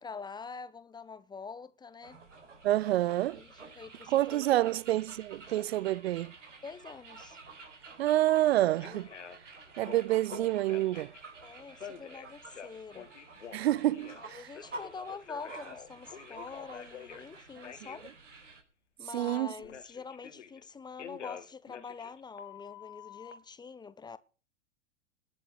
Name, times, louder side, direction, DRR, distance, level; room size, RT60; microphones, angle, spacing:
voice 1, 0.0-2.2 3.3-4.4 4.7-4.8 6.6-7.4 11.4-13.1 14.2-18.1 19.0-24.2, left 5 dB, 10° left, 0.8 m, -45 dB
sound 1, 2.0-18.6, right 3 dB, 85° right, 4.7 m, -50 dB
voice 2, 2.6-3.4 4.1-6.3 8.0-9.1 9.8-11.1 13.5-14.5 19.1-19.5, right 15 dB, 60° right, 0.6 m, -28 dB
Telephone, 8.3-8.4 8.8-9.4 9.8-11.2 11.8-14.2 14.5-17.3 17.6-18.0 19.3-20.6 21.0-23.3, left 7 dB, 80° left, 2.6 m, -47 dB
20.0 x 7.6 x 6.3 m
figure-of-eight pair, 100°, 36 cm